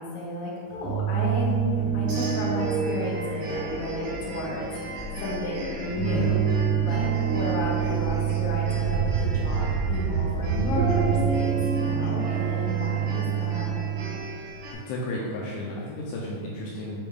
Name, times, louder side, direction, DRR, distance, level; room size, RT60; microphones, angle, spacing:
voice 1, 0.0-1.5 1.9-6.5 6.8-7.1 7.3-13.7, left 1 dB, 65° left, -5 dB, 2.4 m, -33 dB
sound 1, 0.7-14.1, right 8 dB, 50° right, 2.4 m, -27 dB
sound 2, 2.1-14.7, right 2 dB, 65° right, 2.9 m, -39 dB
sound 3, 3.5-11.3, right 3 dB, 85° right, 3.0 m, -32 dB
voice 2, 14.7-17.1, left 1 dB, 80° left, -4 dB, 3.0 m, -33 dB
6.9 x 5.2 x 3.7 m, 2.1 s
omnidirectional pair, 5.8 m